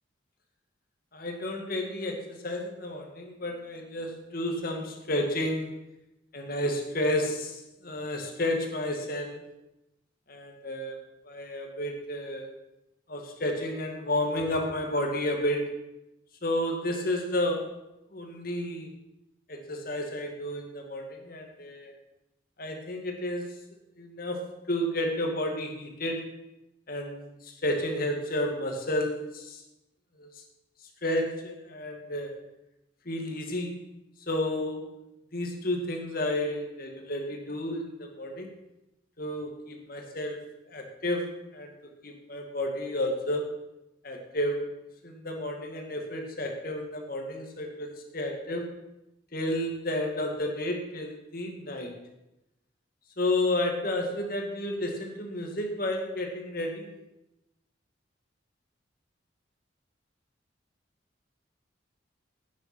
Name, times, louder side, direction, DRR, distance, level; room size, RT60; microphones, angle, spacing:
voice 1, 1.1-5.8 6.3-9.4 10.3-11.0 11.3-12.5 13.1-15.8 16.4-17.7 18.1-18.9 19.5-21.9 22.6-23.5 24.0-26.3 26.9-29.6 30.2-30.3 31.0-32.3 33.1-33.8 34.3-35.0 35.3-38.5 39.2-41.7 42.0-43.5 44.0-44.7 45.0-47.9 48.1-48.7 49.3-52.0 53.2-57.0, left 1 dB, 50° left, 3 dB, 2.1 m, -31 dB
11.5 x 9.4 x 6.1 m, 0.91 s
head